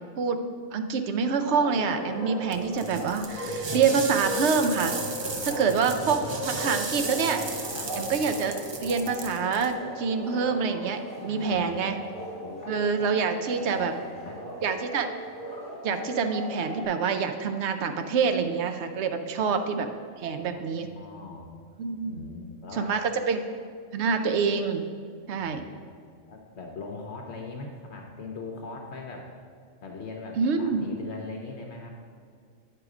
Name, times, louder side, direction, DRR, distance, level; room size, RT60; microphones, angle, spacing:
voice 1, 0.7-4.9 5.4-7.4 7.9-8.5 8.8-12.0 12.7-13.9 14.6-15.1 15.8-19.9 20.2-20.9 21.8-22.2 22.7-23.4 23.9-24.9 25.3-25.6 30.4-30.9, right 5 dB, 65° right, 7 dB, 0.8 m, -26 dB
Bark, 1.5-16.9, equal, 15° left, 2.0 m, -37 dB
sound 1, 2.5-9.7, right 3 dB, 45° right, 0.3 m, -35 dB
voice 2, 5.2-6.1 7.7-8.0 11.2-12.0 12.4-12.6 13.7-14.4 19.4-19.5 20.2-21.5 22.0-22.9 25.4-25.6 26.3-29.3 29.8-31.9, left 3 dB, 65° left, 1 dB, 1.0 m, -41 dB
9.1 x 4.8 x 4.8 m, 2.1 s
omnidirectional pair, 1.3 m